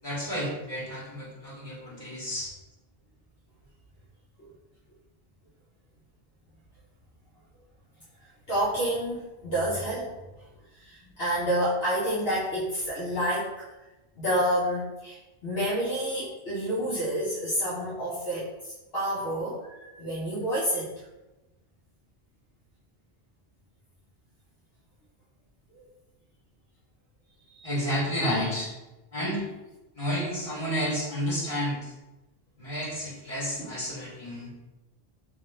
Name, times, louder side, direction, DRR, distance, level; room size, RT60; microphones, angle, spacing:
voice 1, 0.0-2.5 27.6-28.7 29.1-29.4 29.9-31.9 32.6-34.5, equal, 30° left, -8 dB, 1.6 m, -31 dB
voice 2, 8.5-10.1 10.8-13.5 14.2-15.2 15.4-21.0 25.7-25.8 27.5-27.7 33.6-33.7, equal, 65° left, -7 dB, 1.1 m, -29 dB
3.5 x 2.5 x 4.3 m, 1.0 s
omnidirectional pair, 1.1 m